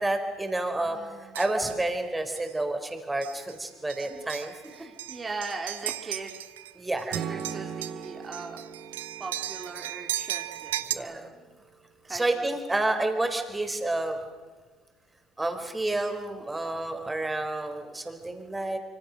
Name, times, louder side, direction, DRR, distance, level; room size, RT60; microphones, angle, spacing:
voice 1, 0.0-4.5 6.8-7.1 10.9-11.2 12.1-14.2 15.4-18.8, right 2 dB, 15° right, 6 dB, 4.4 m, -29 dB
voice 2, 0.8-1.4 4.0-4.3 4.6-6.4 7.0-8.6 9.2-11.6 12.0-12.5, right 3 dB, 30° right, 2 dB, 2.8 m, -40 dB
sound 1, 1.3-1.9 2.4-2.5 3.2-3.6 3.9-6.7 7.0-10.9, right 13 dB, 90° right, 0.8 m, -36 dB
Strum, 7.1-11.3, right 7 dB, 60° right, 2.5 m, -40 dB
26.0 x 25.0 x 6.6 m, 1.4 s
hypercardioid pair, 65°, 0 cm